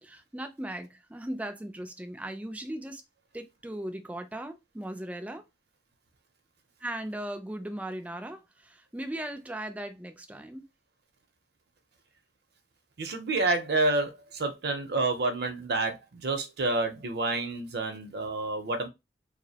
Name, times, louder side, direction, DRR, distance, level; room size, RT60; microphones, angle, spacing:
voice 1, 0.0-3.0 3.3-5.4 6.8-10.7, right 1 dB, 10° right, 0.3 m, -38 dB
voice 2, 13.0-18.9, right 2 dB, 65° right, 0.6 m, -29 dB
2.6 x 2.0 x 2.7 m
head